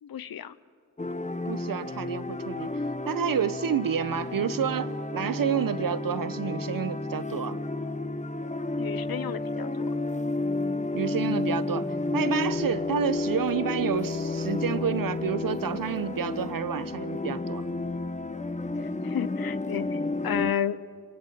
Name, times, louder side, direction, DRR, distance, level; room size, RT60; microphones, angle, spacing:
voice 1, 0.0-0.6 8.8-9.9 18.8-20.8, left 9 dB, 80° left, 16 dB, 0.9 m, -32 dB
sound 1, 1.0-20.5, left 2 dB, 20° left, 1.3 m, -31 dB
voice 2, 1.5-7.6 10.9-11.9 12.1-17.6, right 7 dB, 70° right, 15 dB, 1.1 m, -29 dB
25.5 x 23.5 x 9.3 m, 2.1 s
cardioid pair, 55°, 35 cm